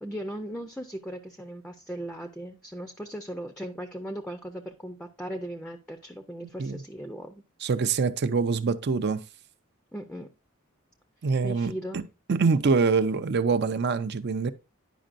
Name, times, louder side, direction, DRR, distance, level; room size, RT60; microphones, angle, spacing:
voice 1, 0.0-7.4 9.9-10.3 11.4-12.0, equal, 5° left, 0.5 m, -38 dB
voice 2, 7.6-9.2 11.2-12.0 12.3-14.5, right 4 dB, 50° right, 0.5 m, -25 dB
10.0 x 5.2 x 2.5 m
head